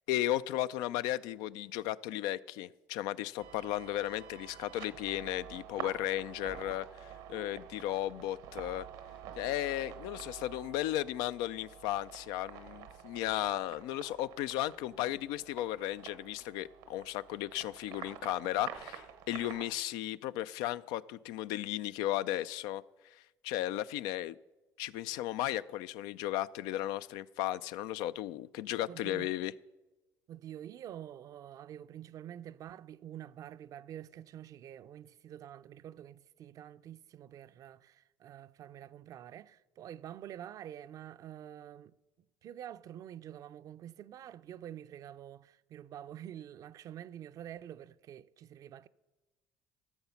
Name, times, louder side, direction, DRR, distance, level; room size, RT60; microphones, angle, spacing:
voice 1, 0.1-8.9 9.4-22.8 23.4-24.4 24.8-29.5, left 14 dB, 80° left, 0.4 m, -35 dB
sound 1, 3.4-19.7, right 9 dB, 85° right, 1.1 m, -49 dB
voice 2, 14.9-15.2 28.9-29.3 30.3-41.9 42.4-48.9, right 11 dB, 60° right, 0.5 m, -47 dB
14.0 x 7.1 x 5.7 m
supercardioid pair, 75°, 7 cm